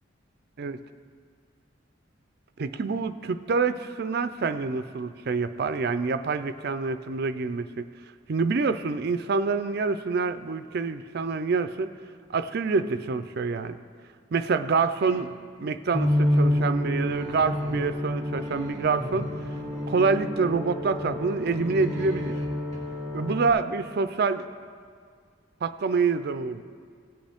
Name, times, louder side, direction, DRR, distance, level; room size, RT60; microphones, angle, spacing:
voice 1, 2.6-7.9 8.3-11.9 12.3-13.8 14.3-15.3 15.6-19.3 19.9-22.3 23.1-24.5 25.6-26.6, right 4 dB, 55° right, 11 dB, 0.4 m, -26 dB
sound 1, 15.0-15.4 15.9-16.6 17.0-18.0 18.3-20.2 21.4-22.8, left 1 dB, 20° left, 2.3 m, -42 dB
sound 2, 15.9-23.5, left 1 dB, ahead, 2.2 m, -28 dB
17.5 x 7.7 x 3.5 m, 2.1 s
head